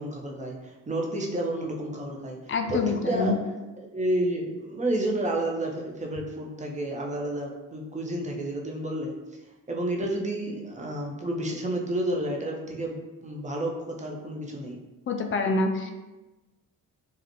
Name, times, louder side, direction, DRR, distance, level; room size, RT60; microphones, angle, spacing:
voice 1, 0.0-9.4 9.7-14.8, right 1 dB, 15° right, -1 dB, 0.6 m, -31 dB
voice 2, 2.5-3.3 15.1-15.9, left 3 dB, 30° left, 4 dB, 0.4 m, -26 dB
2.4 x 2.1 x 2.8 m, 1.1 s
hypercardioid pair, 40°, 44 cm